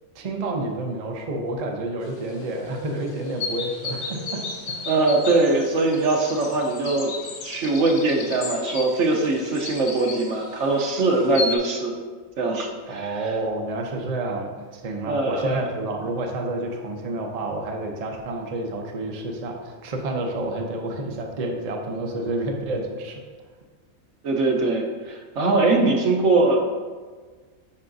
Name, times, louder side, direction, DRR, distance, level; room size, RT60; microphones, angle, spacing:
voice 1, 0.1-4.9 12.9-23.2, right 2 dB, 40° right, 1 dB, 0.6 m, -29 dB
sound 1, 2.0-11.6, left 3 dB, 70° left, 1.1 m, -35 dB
voice 2, 4.9-7.1 7.4-12.0 12.4-13.4 15.1-15.6 24.2-26.9, right 2 dB, 70° right, 2 dB, 1.1 m, -22 dB
9.8 x 4.7 x 2.6 m, 1.4 s
omnidirectional pair, 1.3 m